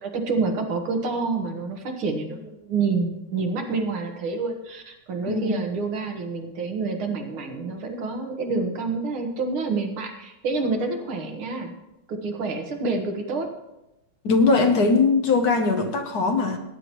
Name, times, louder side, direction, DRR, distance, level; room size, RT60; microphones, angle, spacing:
voice 1, 0.0-11.7 12.1-13.5, right 4 dB, 90° right, 3 dB, 2.3 m, -28 dB
voice 2, 5.3-5.6 14.2-16.6, left 4 dB, 55° left, 5 dB, 1.3 m, -20 dB
18.0 x 9.7 x 3.0 m, 0.93 s
omnidirectional pair, 2.3 m